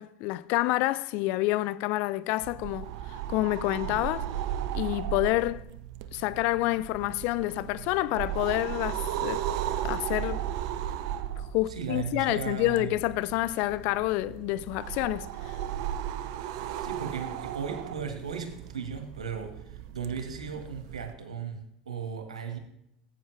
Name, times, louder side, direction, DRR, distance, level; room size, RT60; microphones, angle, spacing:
voice 1, 0.0-2.9 3.3-4.3 4.7-5.6 6.1-9.4 9.8-10.4 11.5-15.5, left 18 dB, 55° left, 0.5 m, -28 dB
sound 1, 2.4-21.1, right 10 dB, 60° right, 0.7 m, -36 dB
voice 2, 11.7-12.9 16.8-22.6, right 6 dB, 80° right, 1.9 m, -36 dB
16.5 x 8.7 x 3.4 m
figure-of-eight pair, 75°, 3 cm